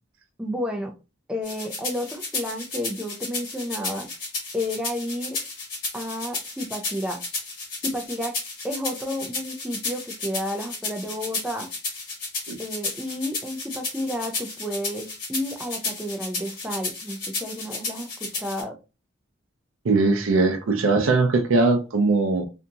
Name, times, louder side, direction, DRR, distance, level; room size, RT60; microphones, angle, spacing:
voice 1, 0.4-0.9 1.3-4.1 4.5-5.4 5.9-7.2 7.8-8.4 8.6-11.7 12.6-18.8, left 1 dB, 5° right, 0.4 m, -31 dB
sound 1, 1.4-18.6, left 3 dB, 45° left, 1.3 m, -33 dB
voice 2, 19.8-22.5, right 3 dB, 80° right, 0.5 m, -20 dB
2.7 x 2.6 x 2.3 m
head